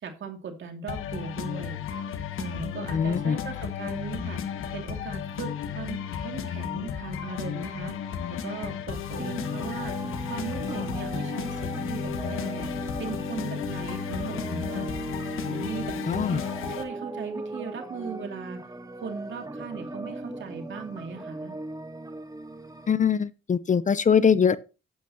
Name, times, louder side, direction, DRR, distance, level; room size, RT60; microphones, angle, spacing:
voice 1, 0.0-1.8 2.3-4.4 4.7-7.9 8.3-10.0 10.3-12.7 13.0-14.9 15.5-16.4 16.8-18.6 19.0-21.6, right 5 dB, 65° right, 2.5 m, -38 dB
sound 1, 0.9-16.8, left 8 dB, 80° left, 1.3 m, -34 dB
voice 2, 2.9-3.4 16.1-16.4 22.9-24.6, left 7 dB, 35° left, 0.6 m, -22 dB
sound 2, 9.2-22.9, right 1 dB, 15° right, 1.3 m, -37 dB
12.0 x 8.3 x 2.9 m
supercardioid pair, 65°, 21 cm